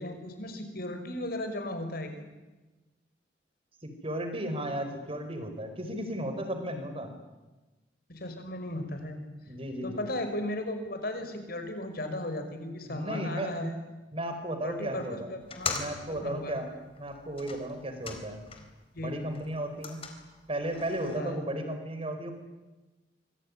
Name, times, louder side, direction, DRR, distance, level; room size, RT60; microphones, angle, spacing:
voice 1, 0.0-2.2 8.1-9.2 9.8-13.8 14.6-15.7 16.1-16.6 18.9-19.3 21.2-21.4, left 1 dB, 60° left, 7 dB, 5.4 m, -36 dB
voice 2, 3.8-7.1 9.5-10.0 12.9-13.7 14.1-15.3 15.7-16.7 17.0-18.4 19.0-20.0 20.5-22.3, right 1 dB, 35° right, 7 dB, 5.0 m, -35 dB
sound 1, 15.4-18.9 19.2-21.2, left 5 dB, 35° left, 4.2 m, -41 dB
26.0 x 22.5 x 9.8 m, 1.1 s
head